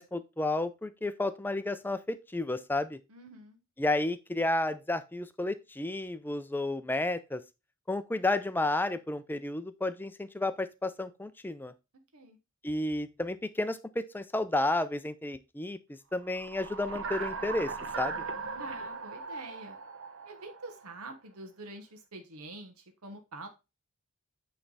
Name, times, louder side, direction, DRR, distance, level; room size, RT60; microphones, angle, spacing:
voice 1, 0.0-3.0 3.8-7.4 7.9-11.7 12.6-17.7 18.0-18.2, left 2 dB, 10° left, 13 dB, 0.4 m, -32 dB
voice 2, 3.1-3.6 12.1-12.4 18.6-19.8 20.2-23.5, right 2 dB, 80° right, 5 dB, 1.2 m, -46 dB
sound 1, 16.3-20.9, right 4 dB, 60° right, 0.9 m, -39 dB
8.9 x 3.3 x 4.0 m, 0.26 s
head